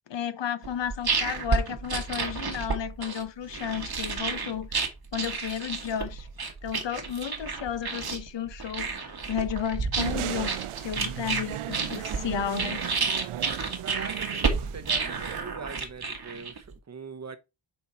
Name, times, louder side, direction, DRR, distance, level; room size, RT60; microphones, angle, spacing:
voice 1, 0.1-10.5 10.8-12.9, left 9 dB, 60° left, 0.8 m, -33 dB
sound 1, 0.6-16.7, right 4 dB, 50° right, 1.4 m, -31 dB
sound 2, 9.9-15.4, right 12 dB, 85° right, 0.6 m, -36 dB
voice 2, 13.8-17.4, right 5 dB, 35° right, 0.9 m, -42 dB
5.9 x 4.1 x 4.0 m
wide cardioid pair, 110°, 48 cm